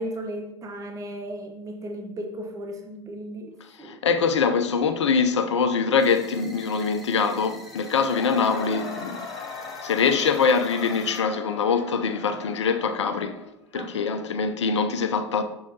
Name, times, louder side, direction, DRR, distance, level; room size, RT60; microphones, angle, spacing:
voice 1, 0.0-3.5 3.8-4.0 13.7-13.9, right 1 dB, 20° right, 0.8 m, -35 dB
voice 2, 3.8-9.3 9.8-13.4 13.7-15.4, left 5 dB, 70° left, 0.6 m, -23 dB
sound 1, 6.0-11.2, left 1 dB, ahead, 1.1 m, -46 dB
Cheering / Crowd, 7.6-14.3, left 4 dB, 40° left, 1.7 m, -40 dB
6.5 x 6.2 x 2.8 m
figure-of-eight pair, 85°, 16 cm